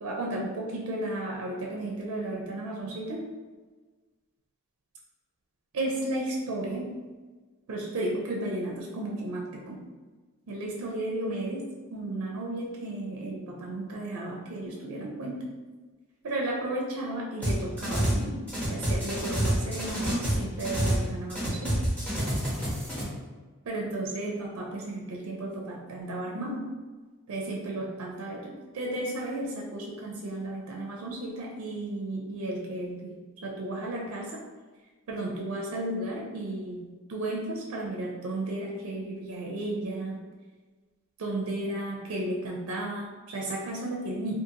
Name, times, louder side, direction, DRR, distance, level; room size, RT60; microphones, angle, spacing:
voice 1, 0.0-3.3 5.7-7.0 7.7-9.8 10.5-15.5 16.2-21.8 23.7-26.7 27.3-33.1 33.4-34.3 35.1-40.2 41.2-44.4, right 1 dB, 65° right, -1 dB, 0.4 m, -34 dB
sound 1, 17.4-18.2 18.5-21.0 21.3-23.0, right 1 dB, 5° left, 1.1 m, -27 dB
2.5 x 2.4 x 2.7 m, 1.3 s
head